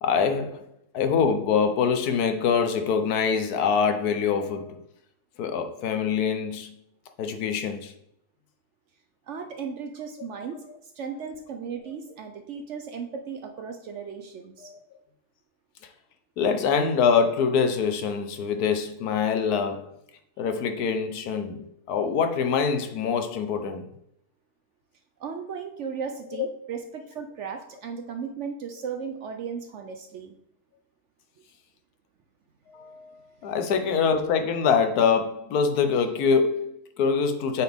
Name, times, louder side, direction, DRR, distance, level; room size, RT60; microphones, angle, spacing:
voice 1, 0.0-0.7 0.9-4.8 5.4-6.8 7.2-7.9 14.6-14.8 16.4-19.9 20.4-23.9 26.4-26.5 32.7-37.6, left 6 dB, 80° left, 1.3 m, -24 dB
voice 2, 9.3-14.7 25.2-30.4, right 6 dB, 65° right, 0.8 m, -36 dB
8.3 x 4.2 x 3.5 m
omnidirectional pair, 1.6 m